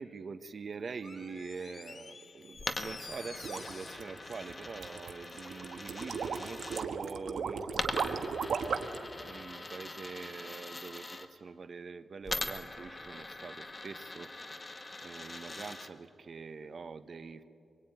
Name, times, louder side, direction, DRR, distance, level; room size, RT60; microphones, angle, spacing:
voice 1, 0.0-17.4, right 4 dB, 50° right, 11 dB, 1.1 m, -45 dB
Door, 1.0-5.6 5.9-6.0, left 4 dB, 45° left, 1.0 m, -50 dB
Coin (dropping), 2.6-6.8 7.7-11.3 12.2-15.9, left 2 dB, 25° left, 1.6 m, -42 dB
sound 1, 3.0-9.0, right 6 dB, 80° right, 1.4 m, -36 dB
25.0 x 23.5 x 9.2 m, 2.7 s
wide cardioid pair, 115°, 0 cm